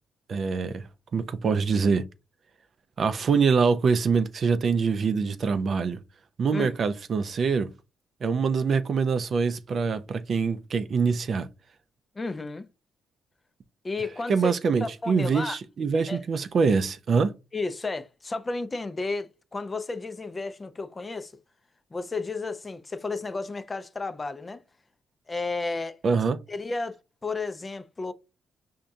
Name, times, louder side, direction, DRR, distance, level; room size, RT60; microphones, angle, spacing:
voice 1, 0.3-2.1 3.0-6.0 6.4-7.7 8.2-11.5 14.3-17.3 26.0-26.4, right 5 dB, 50° right, 0.4 m, -24 dB
voice 2, 12.1-12.7 13.8-14.5 14.8-15.6 16.1-16.2 17.5-21.4 21.9-24.6 25.3-26.0 26.5-28.1, left 3 dB, 25° left, 0.4 m, -32 dB
5.0 x 2.6 x 2.3 m
cardioid pair, 90°, 0 cm